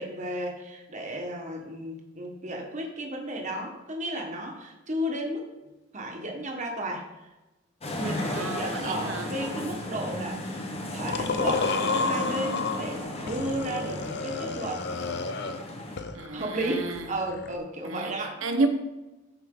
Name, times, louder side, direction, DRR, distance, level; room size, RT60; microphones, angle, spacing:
voice 1, 0.0-7.1 7.9-10.6 10.9-14.9 16.3-18.4, right 1 dB, 40° right, 1.5 m, -34 dB
sound 1, 7.8-16.0, left 1 dB, 30° left, 1.3 m, -35 dB
voice 2, 8.0-9.3 16.1-17.1 17.8-18.1 18.4-18.7, right 3 dB, 75° right, 1.1 m, -31 dB
sound 2, 11.1-12.8 13.3-15.6 16.0-17.6, left 4 dB, 60° left, 0.7 m, -31 dB
14.0 x 5.3 x 3.9 m
head